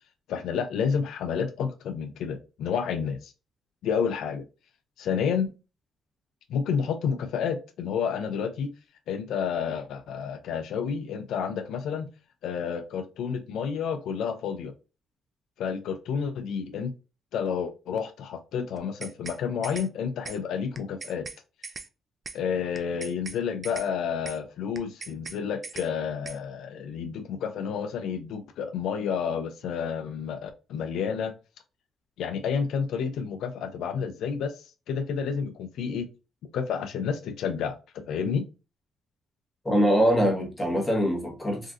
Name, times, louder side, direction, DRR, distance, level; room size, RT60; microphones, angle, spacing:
voice 1, 0.3-3.3 3.8-4.4 5.0-5.5 6.5-8.7 9.1-12.1 12.4-14.7 15.6-16.9 17.3-21.3 22.3-31.3 32.2-36.1 36.5-38.4, left 7 dB, 80° left, 0.4 m, -30 dB
sound 1, 18.8-19.4 19.6-19.9 20.2-20.4 20.7-21.4 21.6-21.9 22.2-22.4 22.7-23.4 23.6-23.9 24.2-24.4 24.7-25.4 25.6-25.9 26.2-26.4, right 4 dB, 35° right, 0.4 m, -39 dB
voice 2, 39.6-41.7, equal, 15° left, 1.1 m, -23 dB
3.5 x 2.5 x 2.4 m
cardioid pair, 90°, 0 cm